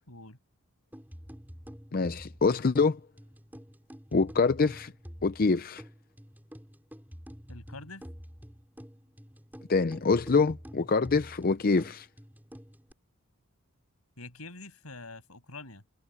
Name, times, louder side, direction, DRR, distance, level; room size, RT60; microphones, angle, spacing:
voice 1, 0.1-0.4 7.5-8.1 14.2-15.8, left 3 dB, 85° left, 6.6 m, -45 dB
sound 1, 0.9-12.9, equal, 10° right, 4.9 m, -48 dB
voice 2, 1.9-3.0 4.1-4.9 5.2-5.8 9.7-12.1, left 4 dB, 45° left, 0.5 m, -25 dB
head